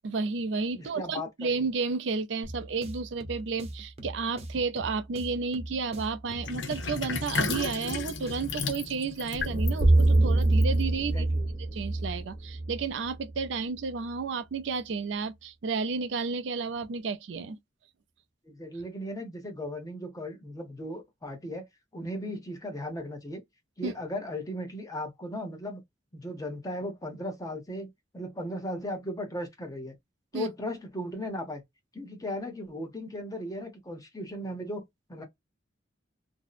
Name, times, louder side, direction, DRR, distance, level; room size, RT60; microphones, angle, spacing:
voice 1, 0.0-11.3 11.7-17.6 23.8-23.9 30.3-30.5, right 4 dB, 75° right, 0.4 m, -32 dB
voice 2, 0.7-1.6 11.1-11.5 18.4-21.7 21.9-23.4 23.8-25.8 26.1-27.9 28.1-30.0 30.3-31.6 31.9-34.8 35.1-35.2, left 1 dB, 20° left, 0.8 m, -37 dB
sound 1, 2.4-8.6, right 1 dB, 35° right, 0.6 m, -42 dB
Sink (filling or washing), 6.4-11.2, left 4 dB, 85° left, 0.6 m, -34 dB
sound 2, 9.4-13.5, right 2 dB, 60° right, 0.9 m, -24 dB
2.6 x 2.0 x 2.3 m
head